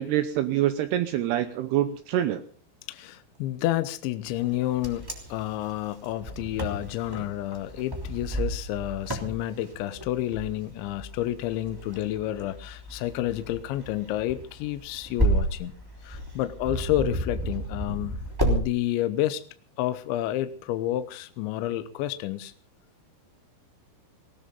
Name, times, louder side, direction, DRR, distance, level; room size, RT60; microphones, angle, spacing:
voice 1, 0.0-2.4, right 12 dB, 90° right, 10 dB, 2.3 m, -25 dB
voice 2, 2.9-15.7 16.0-19.4 19.8-22.5, left 13 dB, 75° left, 12 dB, 2.9 m, -30 dB
Wind, 4.4-18.6, right 1 dB, 5° right, 1.9 m, -32 dB
19.5 x 18.0 x 4.0 m, 0.41 s
omnidirectional pair, 5.9 m